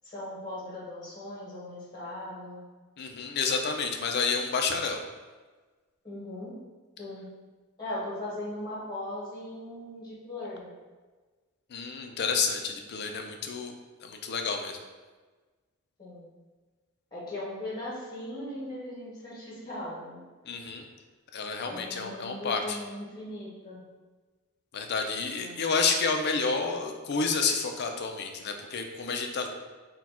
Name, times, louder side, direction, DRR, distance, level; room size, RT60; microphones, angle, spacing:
voice 1, 0.0-2.6 6.0-6.6 7.0-7.4 7.8-10.7 16.0-16.3 17.1-20.2 20.6-20.7 21.7-23.8 25.4-25.6, left 1 dB, 20° left, -7 dB, 1.1 m, -39 dB
voice 2, 3.0-5.0 11.7-13.7 14.0-14.8 20.5-20.8 21.3-22.8 24.7-29.5, left 4 dB, 50° left, 4 dB, 0.4 m, -30 dB
4.2 x 2.3 x 4.2 m, 1.3 s
head